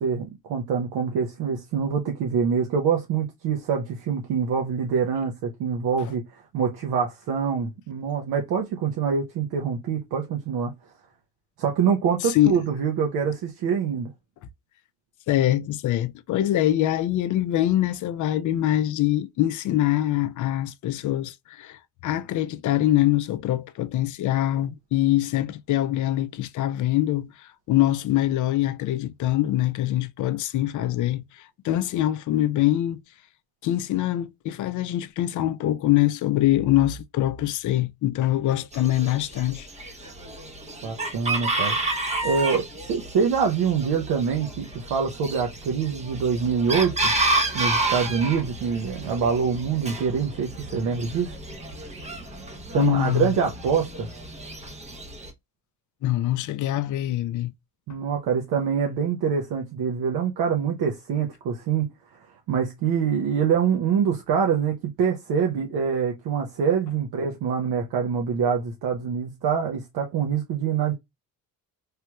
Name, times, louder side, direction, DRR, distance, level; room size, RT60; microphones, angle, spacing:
voice 1, 0.0-10.7 11.6-14.1 40.8-41.8 42.2-47.1 47.5-51.3 52.7-54.1 57.9-61.9 62.5-70.9, right 6 dB, 75° right, 0.8 m, -25 dB
voice 2, 12.2-12.6 15.3-27.3 27.7-31.2 31.6-33.0 33.6-39.7 52.8-53.3 56.0-57.5, left 14 dB, 55° left, 0.5 m, -24 dB
Chicken rooster, 38.7-55.3, right 2 dB, 20° right, 0.7 m, -31 dB
3.3 x 3.0 x 2.2 m
cardioid pair, 125°, 37 cm